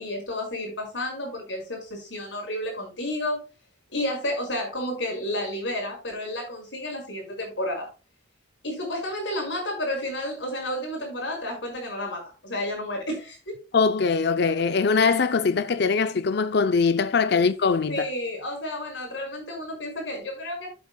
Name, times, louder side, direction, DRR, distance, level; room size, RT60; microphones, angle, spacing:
voice 1, 0.0-3.4 3.9-7.9 8.6-13.6 17.9-20.7, left 1 dB, 85° left, 5.4 m, -31 dB
voice 2, 13.7-18.1, left 5 dB, 60° left, 0.6 m, -22 dB
12.5 x 7.7 x 2.3 m
head